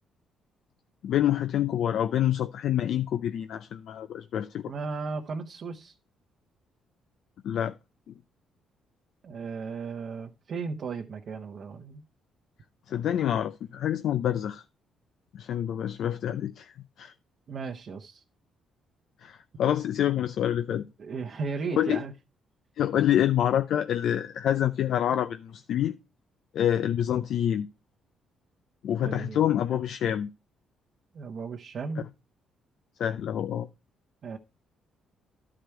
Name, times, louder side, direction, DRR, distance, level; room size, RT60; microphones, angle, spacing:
voice 1, 1.0-4.7 7.4-7.8 8.1-8.2 12.9-14.6 15.3-17.1 19.2-20.8 21.7-22.0 22.8-26.0 26.5-27.7 28.8-30.3 33.0-33.7, left 10 dB, 70° left, 0.5 m, -27 dB
voice 2, 4.7-5.9 9.2-12.0 17.5-18.2 21.0-22.1 29.0-29.4 31.1-32.1 34.2-34.4, right 4 dB, 55° right, 0.9 m, -35 dB
11.5 x 5.0 x 4.4 m
cardioid pair, 90°, 0 cm